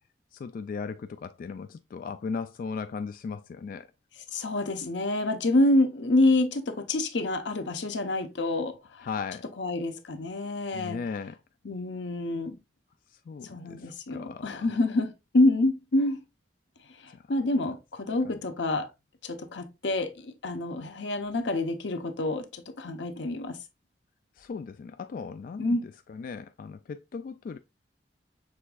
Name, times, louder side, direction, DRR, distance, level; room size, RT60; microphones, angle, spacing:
voice 1, 0.3-3.9 9.0-9.5 10.7-11.4 13.1-14.7 17.1-17.3 18.2-18.4 24.4-25.8 26.1-27.6, left 5 dB, 50° left, 0.3 m, -37 dB
voice 2, 4.3-9.1 9.6-11.0 11.6-12.6 13.4-16.2 17.0-18.9 19.2-23.6 25.6-25.8, left 2 dB, 90° left, 0.8 m, -27 dB
6.5 x 3.5 x 2.3 m
head